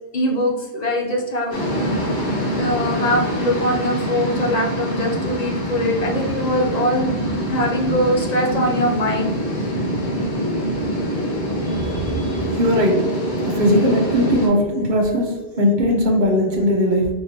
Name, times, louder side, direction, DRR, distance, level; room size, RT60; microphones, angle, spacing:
voice 1, 0.1-1.5 2.6-7.1 7.4-9.7 11.7-12.4, equal, 45° left, 0 dB, 0.6 m, -22 dB
sound 1, 1.5-14.5, equal, 90° left, 1.3 m, -24 dB
voice 2, 12.5-13.0 13.4-17.1, equal, 45° right, 0 dB, 0.9 m, -18 dB
3.5 x 3.3 x 2.8 m, 1.3 s
omnidirectional pair, 1.1 m